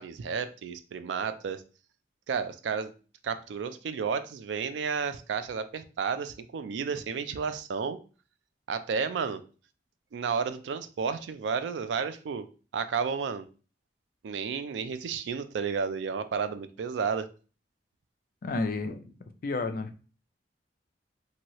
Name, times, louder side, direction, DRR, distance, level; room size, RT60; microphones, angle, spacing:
voice 1, 0.0-1.6 2.3-2.9 3.2-8.0 8.7-9.4 10.1-12.4 12.7-13.5 14.2-17.3, right 6 dB, 85° right, 11 dB, 0.3 m, -32 dB
voice 2, 18.4-19.2 19.4-19.9, left 3 dB, 50° left, 8 dB, 0.4 m, -31 dB
2.9 x 2.7 x 2.9 m, 0.36 s
head